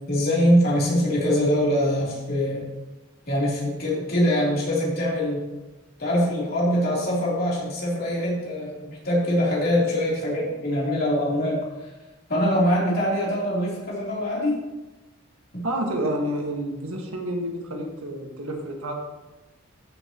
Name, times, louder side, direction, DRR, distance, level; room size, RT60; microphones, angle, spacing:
voice 1, 0.1-2.6 3.3-5.4 6.0-11.9 12.3-14.6 15.5-15.7, equal, 45° left, -5 dB, 3.3 m, -23 dB
voice 2, 15.6-18.9, right 1 dB, 90° right, 1 dB, 1.7 m, -29 dB
14.0 x 7.0 x 3.0 m, 1.1 s
head